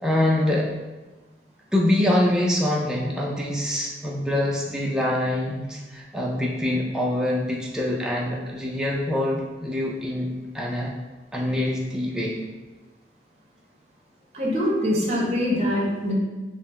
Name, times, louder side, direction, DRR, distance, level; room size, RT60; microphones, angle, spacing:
voice 1, 0.0-0.7 1.7-10.3 10.5-10.9 11.3-12.4, left 1 dB, 5° right, -3 dB, 0.3 m, -24 dB
voice 2, 14.3-16.1, left 1 dB, 35° right, -3 dB, 0.8 m, -23 dB
3.9 x 2.0 x 4.1 m, 1.2 s
head